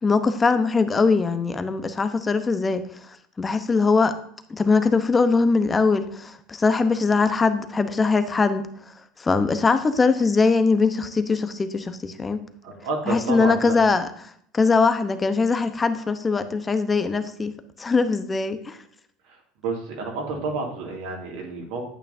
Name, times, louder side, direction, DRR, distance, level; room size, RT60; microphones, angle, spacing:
voice 1, 0.0-4.1 4.5-8.7 9.2-12.4 13.1-18.8, left 4 dB, 25° left, 10 dB, 0.9 m, -21 dB
voice 2, 12.6-13.8 19.3-19.4 19.6-21.8, right 3 dB, 70° right, 0 dB, 2.6 m, -30 dB
10.0 x 8.6 x 2.8 m, 0.66 s
hypercardioid pair, 75°, 0 cm